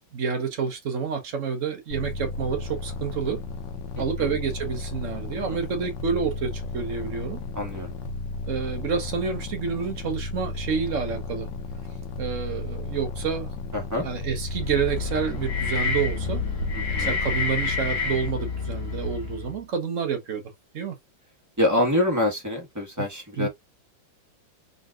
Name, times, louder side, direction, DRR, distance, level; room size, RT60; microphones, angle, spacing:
voice 1, 0.1-3.4 4.0-7.4 8.5-11.5 12.2-13.5 14.0-16.4 17.0-20.4 20.7-20.9 23.4-23.5, right 6 dB, 50° right, 1.2 m, -29 dB
sound 1, 1.9-18.3, left 3 dB, 75° left, 1.4 m, -34 dB
voice 2, 4.0-4.3 5.5-5.6 7.5-7.9 13.7-14.0 16.7-17.2 21.6-23.5, left 1 dB, 10° right, 1.5 m, -26 dB
sound 2, 14.3-19.6, left 4 dB, 45° left, 1.4 m, -29 dB
3.9 x 3.9 x 2.4 m
omnidirectional pair, 2.1 m